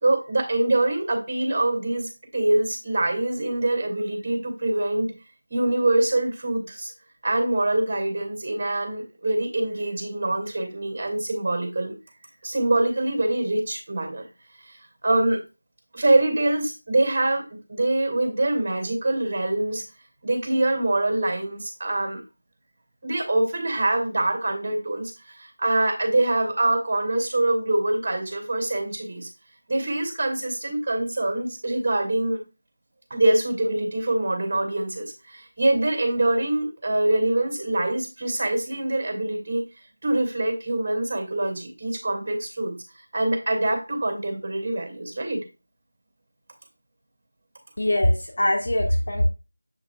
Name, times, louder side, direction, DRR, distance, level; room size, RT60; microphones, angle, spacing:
voice 1, 0.0-5.1 5.5-6.9 7.2-12.0 12.4-14.3 15.0-15.4 15.9-17.4 17.7-19.8 20.2-22.2 23.0-29.3 29.7-32.4 33.1-39.6 40.0-42.7 43.1-45.4, right 2 dB, 30° right, 3 dB, 2.5 m, -24 dB
voice 2, 47.8-49.2, left 1 dB, 50° left, 0 dB, 1.7 m, -22 dB
7.5 x 5.8 x 2.4 m, 0.28 s
figure-of-eight pair, 170°, 0 cm